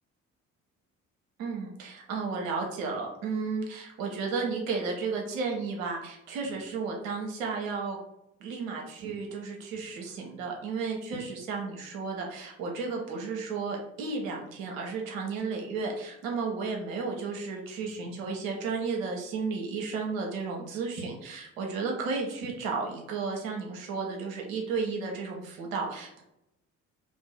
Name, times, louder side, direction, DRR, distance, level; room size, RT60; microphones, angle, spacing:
voice 1, 1.4-8.0 8.4-26.2, right 4 dB, 80° right, 0 dB, 0.8 m, -33 dB
2.6 x 2.5 x 3.3 m, 0.84 s
figure-of-eight pair, 45°, 40 cm